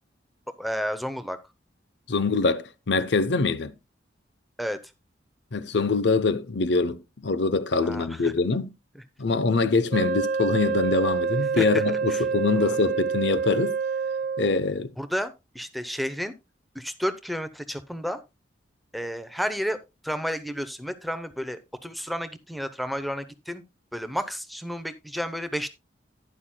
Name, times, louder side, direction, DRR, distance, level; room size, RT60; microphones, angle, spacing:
voice 1, 0.6-1.4 4.6-4.8 7.8-8.3 8.9-9.0 11.6-12.2 12.5-12.8 15.0-16.3 16.7-18.2 18.9-19.8 20.0-23.6 23.9-25.7, equal, ahead, 0.7 m, -31 dB
voice 2, 2.1-3.7 5.5-8.7 9.2-13.8 14.4-14.9, left 3 dB, 70° left, 0.7 m, -24 dB
Wind instrument woodwind instrument, 9.9-14.6, right 5 dB, 50° right, 0.7 m, -27 dB
11.5 x 10.0 x 2.2 m
head